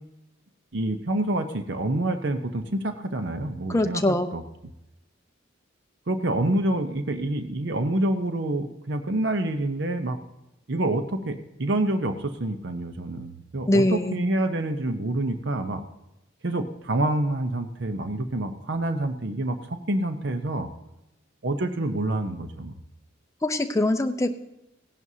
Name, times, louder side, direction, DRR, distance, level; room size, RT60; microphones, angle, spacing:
voice 1, 0.7-4.0 4.3-4.4 6.1-10.2 10.7-15.8 16.4-20.7 21.4-22.7, right 1 dB, 60° right, 8 dB, 0.8 m, -27 dB
voice 2, 3.7-4.3 13.7-14.2 23.4-24.3, left 1 dB, 15° left, 6 dB, 0.6 m, -23 dB
16.5 x 11.0 x 2.8 m, 0.90 s
head